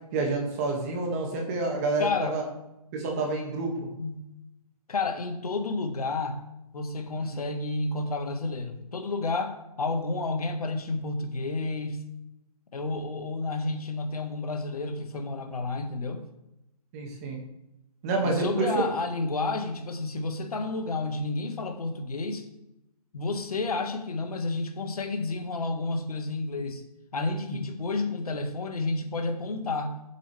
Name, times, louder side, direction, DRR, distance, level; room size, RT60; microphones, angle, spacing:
voice 1, 0.1-2.4 2.9-3.7 7.3-7.4 16.9-17.4 18.0-18.8, right 3 dB, 25° right, 0 dB, 2.0 m, -28 dB
voice 2, 2.0-2.4 3.1-3.3 4.0-4.2 4.9-6.4 6.7-12.0 12.7-16.2 18.2-22.4 23.1-26.8 27.1-29.9, left 3 dB, 65° left, 5 dB, 1.8 m, -30 dB
11.5 x 7.9 x 3.4 m, 0.89 s
hypercardioid pair, 160°, 20 cm